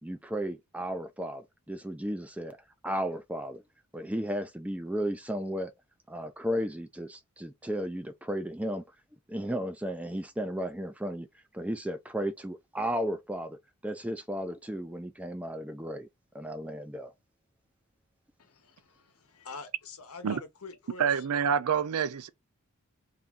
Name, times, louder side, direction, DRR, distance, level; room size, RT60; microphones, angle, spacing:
voice 1, 0.0-2.6 2.8-3.6 3.9-5.7 6.1-8.8 9.3-11.3 11.5-13.6 13.8-16.1 16.3-17.1, equal, 5° right, 0.5 m, -34 dB
voice 2, 18.4-21.3, left 4 dB, 80° left, 1.0 m, -45 dB
voice 3, 21.0-22.3, right 7 dB, 85° right, 0.4 m, -27 dB
3.6 x 2.8 x 3.6 m
head